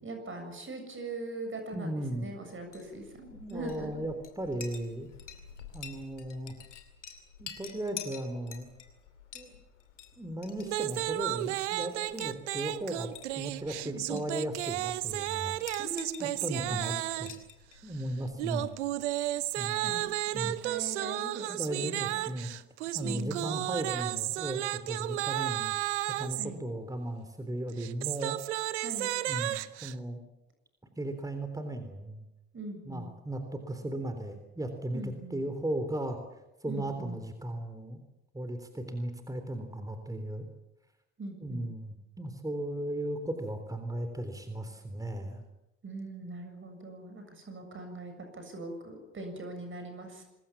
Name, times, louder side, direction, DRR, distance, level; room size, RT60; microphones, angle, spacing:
voice 1, 0.0-4.0 13.8-14.2 15.8-16.8 19.6-22.2 23.0-23.7 26.4-26.6 28.8-29.1 32.5-33.1 34.9-35.4 36.6-37.2 41.2-41.7 45.8-50.2, right 2 dB, 35° right, 5 dB, 7.3 m, -41 dB
voice 2, 1.7-2.3 3.3-5.1 5.7-6.5 7.4-8.7 9.3-9.6 10.2-15.6 16.2-17.3 17.8-18.7 19.6-19.9 20.3-20.5 21.5-22.5 22.9-25.7 26.2-28.4 29.3-30.2 31.0-32.2 32.9-36.2 36.6-38.0 38.3-40.4 41.4-45.4, right 1 dB, 10° right, 7 dB, 3.6 m, -36 dB
Chink clink, 2.6-20.4, left 8 dB, 90° left, 2.7 m, -50 dB
sound 1, 10.7-17.4 18.4-26.5 27.7-29.9, right 16 dB, 80° right, 0.9 m, -33 dB
26.0 x 21.0 x 7.4 m, 0.96 s
hypercardioid pair, 55°, 35 cm